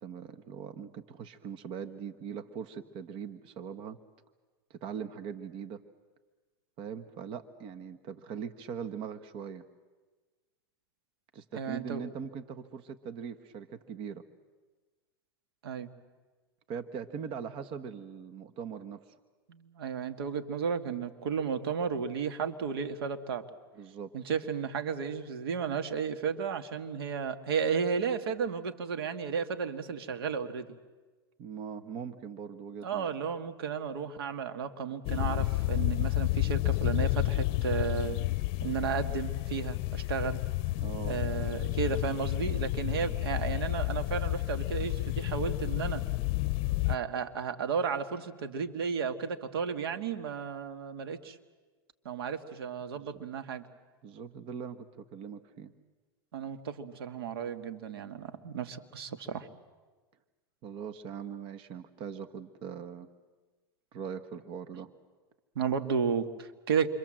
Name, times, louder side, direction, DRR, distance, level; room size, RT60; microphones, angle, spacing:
voice 1, 0.0-4.0 4.7-5.8 6.8-9.6 11.3-14.2 16.7-19.1 23.8-24.1 31.4-33.1 40.8-41.2 52.9-53.2 54.0-55.7 60.6-63.1 63.9-64.9, right 7 dB, 45° right, 10 dB, 1.4 m, -41 dB
voice 2, 11.6-12.0 15.6-15.9 19.5-23.4 24.1-30.7 32.8-38.2 38.6-40.4 41.1-46.0 46.9-51.4 52.1-53.7 56.3-59.5 65.6-66.9, right 6 dB, 85° right, 9 dB, 1.8 m, -33 dB
sound 1, 35.0-47.0, left 19 dB, 50° left, 0.7 m, -30 dB
28.0 x 24.5 x 7.7 m, 1.3 s
supercardioid pair, 120°, 12 cm